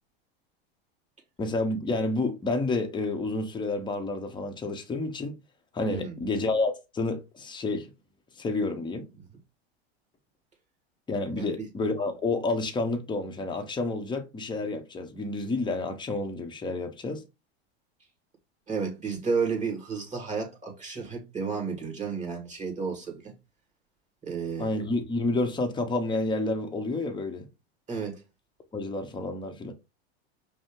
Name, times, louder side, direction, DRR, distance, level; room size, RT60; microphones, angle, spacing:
voice 1, 1.4-5.4 5.7-7.9 8.4-9.1 11.1-17.2 24.6-27.5 28.7-29.7, left 2 dB, 15° left, 0.8 m, -29 dB
voice 2, 5.9-6.2 11.4-11.7 18.7-23.3 24.2-24.7 27.9-28.2, right 5 dB, 25° right, 2.1 m, -32 dB
5.2 x 2.1 x 3.7 m
hypercardioid pair, 105°, 31 cm